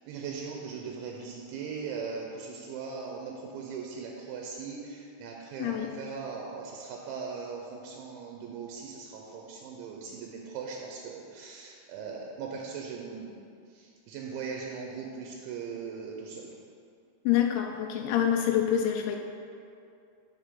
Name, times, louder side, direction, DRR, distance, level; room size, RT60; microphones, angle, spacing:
voice 1, 0.1-13.4 14.1-16.5, right 5 dB, 85° right, -1 dB, 2.7 m, -39 dB
voice 2, 5.6-5.9 17.3-19.2, left 10 dB, 85° left, 3 dB, 2.7 m, -26 dB
12.5 x 4.7 x 3.7 m, 2.4 s
omnidirectional pair, 5.9 m